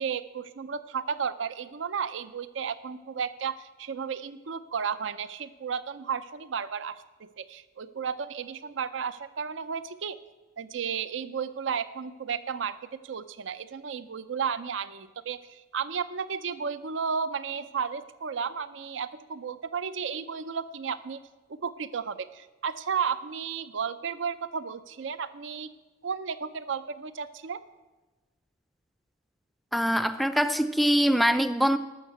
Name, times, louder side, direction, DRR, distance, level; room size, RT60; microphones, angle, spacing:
voice 1, 0.0-10.2 10.6-12.8 13.0-21.2 21.5-25.7 26.0-27.6, right 6 dB, 85° right, 14 dB, 0.5 m, -33 dB
voice 2, 29.7-31.8, equal, ahead, 12 dB, 0.3 m, -23 dB
12.5 x 6.5 x 7.9 m, 1.2 s
head